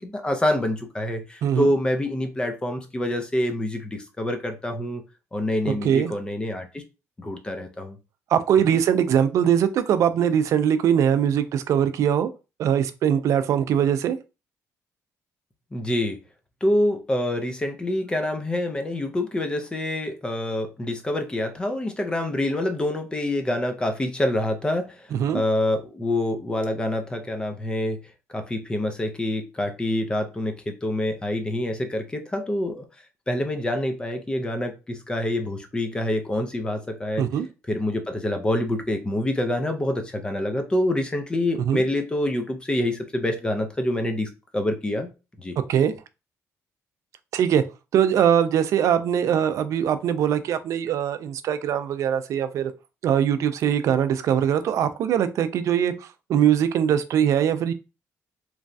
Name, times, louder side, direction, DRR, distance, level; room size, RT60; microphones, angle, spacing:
voice 1, 0.0-5.0 5.3-6.8 7.2-8.0 15.7-16.2 16.6-25.1 25.3-28.0 28.3-32.8 33.3-37.2 37.7-45.1 45.4-45.5, left 1 dB, 15° left, 0.5 m, -26 dB
voice 2, 5.7-6.1 8.3-12.3 12.6-14.2 25.1-25.4 37.2-37.5 41.6-41.8 45.6-45.9 47.3-47.6 47.9-52.7 53.0-57.7, right 9 dB, 65° right, 0.3 m, -22 dB
3.0 x 2.2 x 2.6 m
cardioid pair, 120°, 6 cm